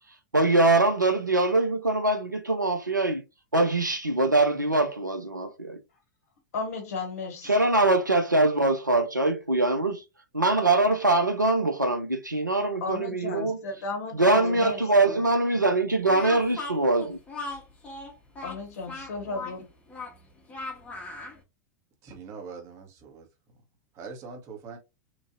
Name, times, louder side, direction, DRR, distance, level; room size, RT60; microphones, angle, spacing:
voice 1, 0.3-3.2 3.5-5.8 7.4-10.0 10.3-13.6 14.1-17.2, right 2 dB, 85° right, 0.6 m, -23 dB
voice 2, 6.5-7.5 12.8-14.8 15.1-15.2 18.4-19.7, left 3 dB, 55° left, 0.8 m, -34 dB
Speech, 16.0-21.4, left 3 dB, 15° left, 0.9 m, -38 dB
voice 3, 22.0-23.3 23.9-24.8, right 5 dB, 30° right, 1.1 m, -42 dB
3.1 x 2.5 x 2.6 m
figure-of-eight pair, 95°, 10 cm